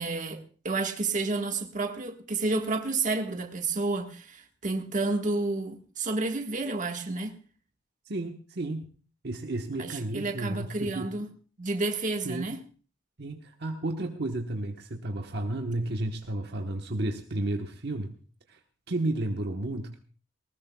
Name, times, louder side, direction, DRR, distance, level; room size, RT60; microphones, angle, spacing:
voice 1, 0.0-7.4 9.8-11.3 11.6-12.6, right 3 dB, 45° right, 1.5 m, -30 dB
voice 2, 8.1-8.9 9.2-11.1 12.2-12.5 13.2-18.1 18.5-18.6 18.9-19.9, right 2 dB, 60° right, 1.2 m, -32 dB
19.5 x 19.5 x 2.3 m
head